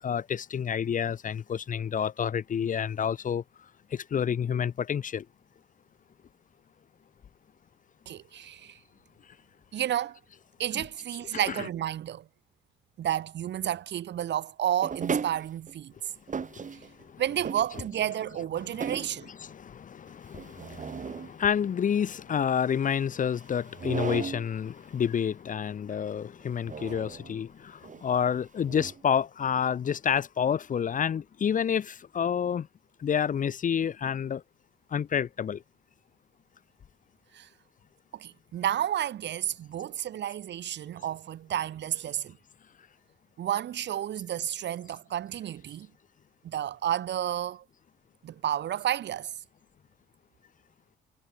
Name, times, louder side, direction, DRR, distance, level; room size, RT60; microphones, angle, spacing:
voice 1, 0.0-3.4 3.9-5.2 10.7-10.8 11.4-11.7 17.3-18.1 18.9-27.7 28.0-32.7 33.0-34.4 34.9-35.6, left 8 dB, 40° left, 0.6 m, -29 dB
voice 2, 8.1-8.8 9.7-10.2 10.6-12.2 13.0-15.9 17.2-19.3 37.3-37.5 38.1-42.4 43.4-45.9 46.4-47.6 48.2-49.3, right 11 dB, 60° right, 1.0 m, -31 dB
sound 1, 14.8-15.8 16.3-17.0 17.4-18.2 18.6-19.2 20.3-21.3 23.6-24.5 26.7-27.4 27.8-28.0 28.6-29.0, right 6 dB, 40° right, 2.5 m, -35 dB
cardioid pair, 90°, 20 cm